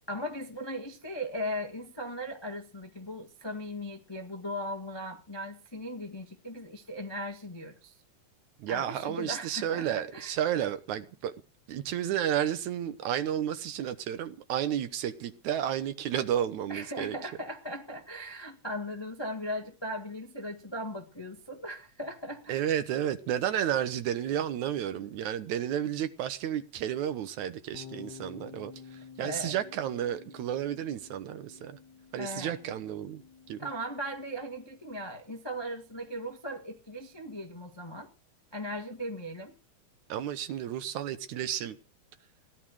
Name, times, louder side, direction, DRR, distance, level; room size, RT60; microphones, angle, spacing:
voice 1, 0.1-8.0 8.7-10.4 16.7-22.6 29.2-29.5 32.2-32.6 33.6-38.1 38.5-39.6, equal, 20° left, 0.6 m, -38 dB
voice 2, 8.6-11.3 11.7-17.2 22.5-31.8 32.1-33.2 33.5-33.7 40.1-41.8, right 10 dB, 70° right, 2.3 m, -32 dB
sound 1, 27.7-34.0, left 6 dB, 45° left, 1.7 m, -50 dB
17.0 x 11.0 x 6.3 m
omnidirectional pair, 3.6 m